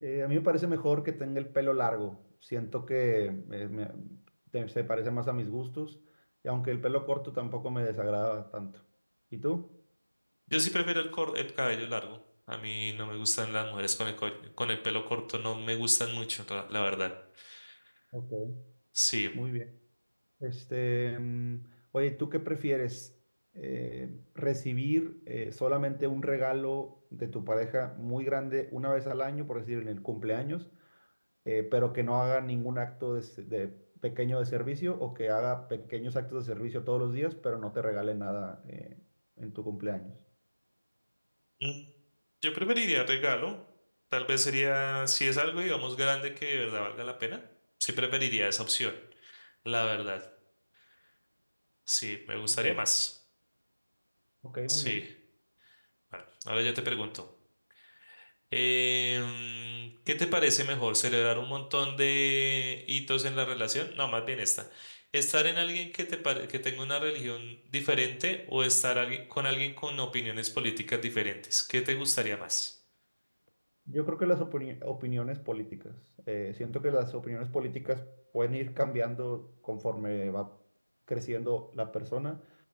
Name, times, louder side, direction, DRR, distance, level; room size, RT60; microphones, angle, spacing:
voice 1, 0.0-4.2 4.5-5.9 6.4-8.8 9.3-9.7 18.1-18.6 19.3-19.7 20.4-21.7 21.9-23.1 23.5-30.7 31.5-39.0 39.4-40.2 52.6-52.7 54.4-55.0 73.9-76.0 76.3-78.1 78.3-80.5 81.1-82.4, equal, 85° right, 0.4 m, -32 dB
voice 2, 10.5-12.2 12.5-17.1 17.4-17.8 18.9-19.3 41.6-41.8 42.4-43.6 44.1-47.4 47.8-48.9 49.2-50.2 51.9-53.1 54.7-55.1 56.1-57.2 58.1-72.7, left 1 dB, 25° left, 0.3 m, -31 dB
4.9 x 4.7 x 4.8 m
figure-of-eight pair, 180°, 0 cm